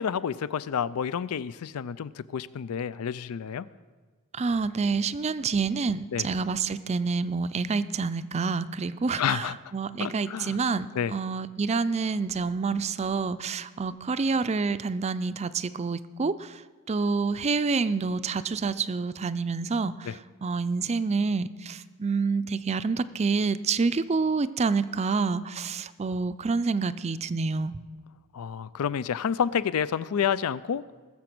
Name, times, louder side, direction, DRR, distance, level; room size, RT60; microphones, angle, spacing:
voice 1, 0.0-3.7 6.1-6.3 9.2-9.6 10.0-10.6 10.9-11.1 20.1-20.2 28.3-30.8, left 7 dB, 85° left, 18 dB, 0.4 m, -29 dB
voice 2, 4.3-16.6 16.9-27.8, right 4 dB, 30° right, 14 dB, 0.4 m, -28 dB
20.0 x 7.0 x 6.0 m, 1.4 s
head